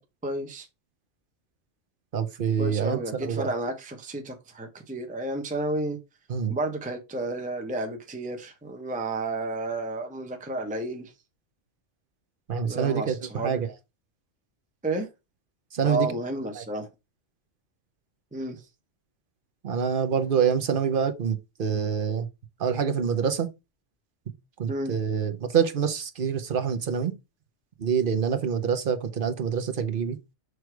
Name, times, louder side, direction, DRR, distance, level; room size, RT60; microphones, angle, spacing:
voice 1, 0.2-0.7 2.6-6.0 6.5-11.1 12.6-13.6 14.8-15.1 15.8-16.9 18.3-18.6 24.7-24.9, right 2 dB, 10° right, 0.8 m, -31 dB
voice 2, 2.1-3.5 6.3-6.5 12.5-13.7 15.7-16.1 16.6-16.7 19.6-22.3 22.6-23.5 24.6-27.1 27.8-30.2, right 7 dB, 50° right, 0.9 m, -26 dB
6.3 x 3.3 x 4.6 m
omnidirectional pair, 1.2 m